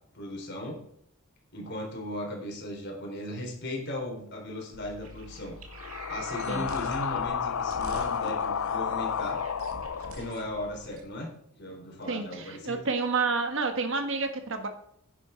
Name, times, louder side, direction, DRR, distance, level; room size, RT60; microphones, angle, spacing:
voice 1, 0.1-0.8 1.5-5.6 6.1-9.4 10.1-12.8, left 1 dB, 50° left, 0 dB, 3.9 m, -37 dB
sound 1, 4.7-10.9, left 7 dB, 70° left, 0.5 m, -32 dB
sound 2, 5.0-7.3 7.7-10.5 10.9-11.0, right 2 dB, 75° right, 2.3 m, -46 dB
voice 2, 12.1-14.7, right 4 dB, 60° right, 6 dB, 1.5 m, -29 dB
11.0 x 8.7 x 4.6 m, 0.70 s
head